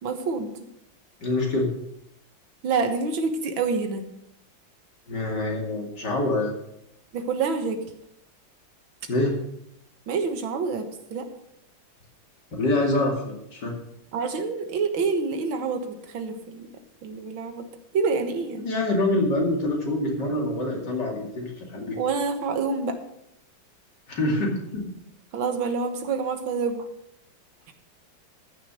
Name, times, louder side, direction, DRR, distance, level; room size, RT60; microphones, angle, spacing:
voice 1, 0.0-0.5 2.6-4.0 7.1-7.8 10.1-11.3 14.1-16.7 17.0-17.7 17.9-18.7 22.0-23.0 25.3-26.9, right 4 dB, 85° right, 7 dB, 2.1 m, -27 dB
voice 2, 1.2-1.7 5.1-6.5 9.1-9.4 12.6-13.7 18.6-22.0 24.1-24.9, left 2 dB, 60° left, 0 dB, 3.2 m, -25 dB
14.0 x 6.5 x 6.4 m, 0.77 s
omnidirectional pair, 2.1 m